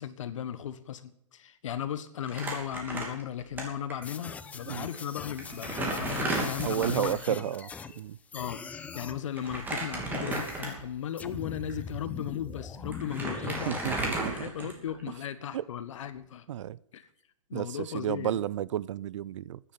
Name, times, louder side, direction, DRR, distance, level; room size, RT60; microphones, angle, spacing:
voice 1, 0.0-7.4 8.3-14.0 14.3-16.4 16.9-17.1 17.5-18.4, left 9 dB, 65° left, 14 dB, 1.3 m, -36 dB
Crumpling crinkling, 2.3-3.6 3.9-4.0 4.9-5.0 5.4-7.2 9.4-11.0 11.6-11.7 12.6-12.7 12.9-15.0, right 2 dB, 10° right, 3.0 m, -34 dB
sound 1, 4.0-8.0 8.3-9.2 10.3-10.7 11.2-14.1, left 5 dB, 10° left, 0.5 m, -42 dB
voice 2, 6.6-7.7 8.0-8.2 13.4-14.5 15.5-15.6 16.5-16.8 17.5-17.7 17.9-19.6, right 11 dB, 60° right, 22 dB, 0.5 m, -32 dB
10.0 x 9.8 x 8.7 m, 0.73 s
hypercardioid pair, 145°, 17 cm